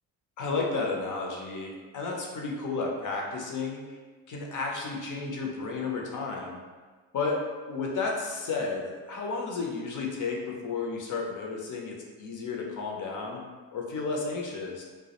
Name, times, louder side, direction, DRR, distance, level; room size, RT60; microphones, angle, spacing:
voice 1, 0.4-4.0 4.3-6.6 7.1-7.4 7.7-13.4 13.7-14.8, left 4 dB, 40° left, -1 dB, 0.6 m, -32 dB
2.2 x 2.1 x 2.8 m, 1.4 s
supercardioid pair, 65°, 47 cm